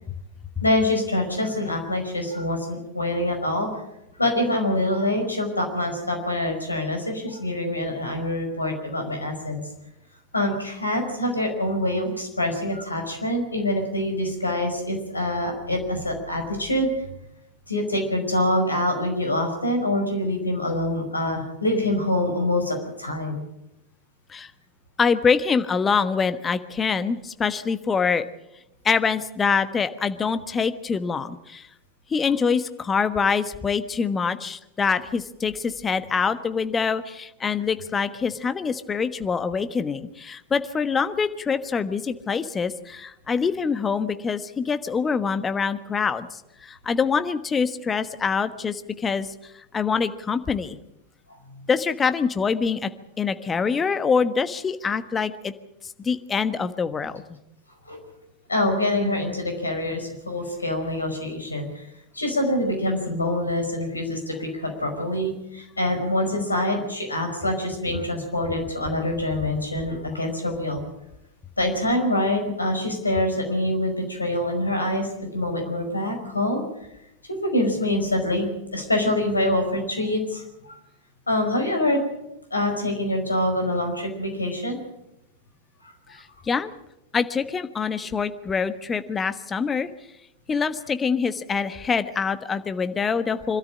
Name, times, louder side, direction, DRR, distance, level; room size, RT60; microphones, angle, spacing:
voice 1, 0.6-3.7 4.2-9.6 10.3-17.0 17.7-23.4 57.9-58.0 58.5-61.9 62.1-70.8 71.6-76.6 77.4-80.7 81.3-82.0 82.5-84.8, left 1 dB, 80° left, 4 dB, 5.2 m, -25 dB
voice 2, 25.0-28.3 28.8-31.7 32.1-49.3 49.7-50.8 51.7-52.9 53.2-55.5 56.0-57.4 86.1-86.7 87.1-89.9 90.5-93.6, left 5 dB, 20° left, 11 dB, 1.3 m, -25 dB
26.0 x 13.0 x 8.8 m, 0.88 s
figure-of-eight pair, 90°, 0 cm